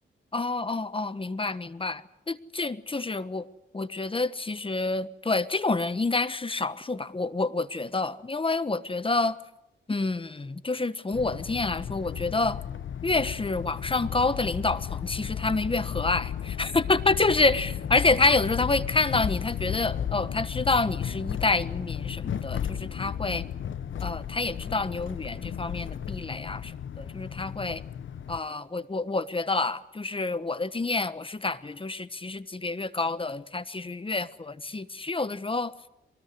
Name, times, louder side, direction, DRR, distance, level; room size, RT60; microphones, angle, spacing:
voice 1, 0.3-3.5 3.7-9.4 9.9-12.6 13.0-23.4 24.0-26.7 27.0-27.8 28.3-35.7, left 3 dB, 25° left, 1.2 m, -28 dB
sound 1, 11.1-28.4, left 9 dB, 75° left, 1.1 m, -34 dB
23.5 x 20.0 x 9.7 m
cardioid pair, 75°, 20 cm